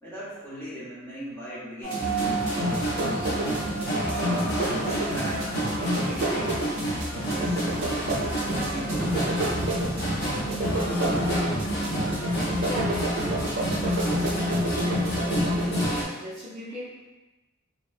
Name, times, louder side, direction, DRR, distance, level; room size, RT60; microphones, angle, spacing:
voice 1, 0.0-2.1 4.0-5.6 5.8-7.6 8.4-9.5, equal, 10° left, -10 dB, 0.8 m, -39 dB
sound 1, 1.8-15.9, right 1 dB, 55° right, 0.7 m, -28 dB
sound 2, 2.0-16.0, right 1 dB, 45° left, 0.6 m, -30 dB
voice 2, 12.6-14.3 14.8-17.1, left 1 dB, 30° right, -9 dB, 0.4 m, -39 dB
2.8 x 2.1 x 2.4 m, 1.1 s
head